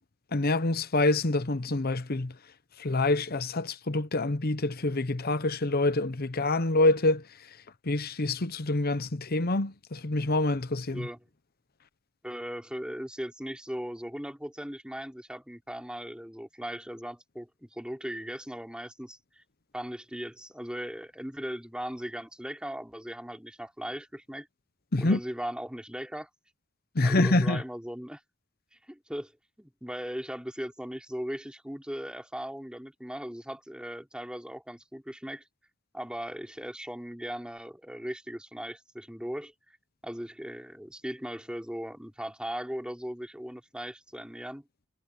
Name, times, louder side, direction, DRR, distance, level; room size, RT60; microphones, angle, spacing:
voice 1, 0.3-2.3 2.8-7.2 7.8-11.1 24.9-25.2 26.9-27.6, left 2 dB, 50° left, 1.0 m, -26 dB
voice 2, 12.2-19.4 19.7-24.5 25.0-26.3 27.0-28.2 28.9-29.3 29.6-35.4 35.9-39.5 40.0-44.6, equal, 5° right, 3.6 m, -38 dB
head